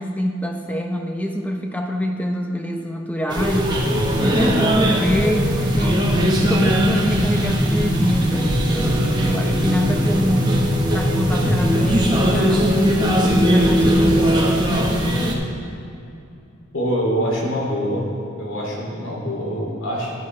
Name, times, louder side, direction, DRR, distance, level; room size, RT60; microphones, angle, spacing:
voice 1, 0.0-3.7 4.2-6.0 6.5-10.5 10.9-12.8 13.5-14.6, equal, 5° left, 3 dB, 0.7 m, -25 dB
sound 1, 3.3-15.3, equal, 20° right, 1.0 m, -19 dB
voice 2, 16.7-18.1 18.4-20.1, equal, 75° left, -2 dB, 2.7 m, -24 dB
13.0 x 10.5 x 3.2 m, 2.7 s
head